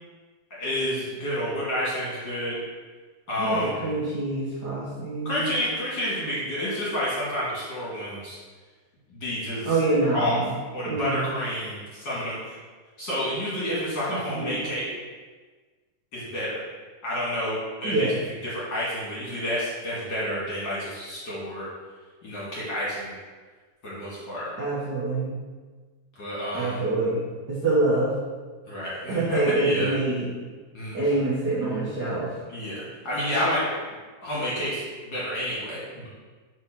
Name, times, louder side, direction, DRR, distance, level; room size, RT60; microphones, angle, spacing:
voice 1, 0.6-2.6 3.3-3.9 5.2-8.4 9.1-9.8 10.1-10.4 10.7-12.6 13.0-14.8 16.1-16.6 17.0-18.2 18.4-21.7 22.2-23.1 23.8-24.5 26.2-26.8 28.7-29.9 30.7-31.0 32.5-33.7 34.2-36.1, equal, 35° left, -8 dB, 2.2 m, -29 dB
voice 2, 3.4-5.6 9.6-10.5 10.9-11.4 14.1-14.6 17.8-18.2 24.6-25.4 26.5-27.2 27.5-28.2 29.1-30.3 30.9-32.4, right 2 dB, 80° right, -9 dB, 0.9 m, -26 dB
6.3 x 4.7 x 6.0 m, 1.4 s
omnidirectional pair, 4.4 m